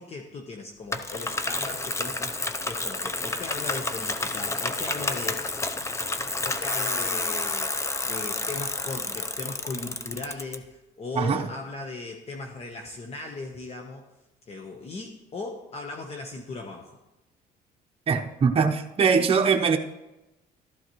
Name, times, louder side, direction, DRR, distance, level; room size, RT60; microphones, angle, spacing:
voice 1, 0.0-5.6 6.4-14.1 14.5-17.0, left 3 dB, 40° left, 1.1 m, -38 dB
Bicycle, 0.9-10.5, left 3 dB, 15° left, 0.7 m, -30 dB
voice 2, 18.1-19.8, right 5 dB, 35° right, 0.9 m, -22 dB
13.0 x 11.5 x 3.1 m
cardioid pair, 110°, 17 cm